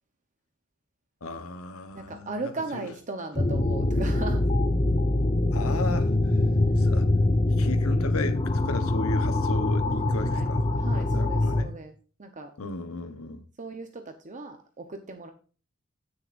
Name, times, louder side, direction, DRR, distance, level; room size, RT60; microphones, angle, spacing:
voice 1, 1.2-2.9 5.5-6.4 6.8-7.1 7.6-11.7 12.6-13.4, left 2 dB, 80° left, 1.1 m, -35 dB
voice 2, 1.9-4.4 10.2-11.9 12.2-12.5 13.6-15.3, right 3 dB, 35° right, 0.9 m, -37 dB
sound 1, 3.4-11.6, left 2 dB, 30° left, 0.9 m, -24 dB
16.5 x 6.8 x 2.6 m
head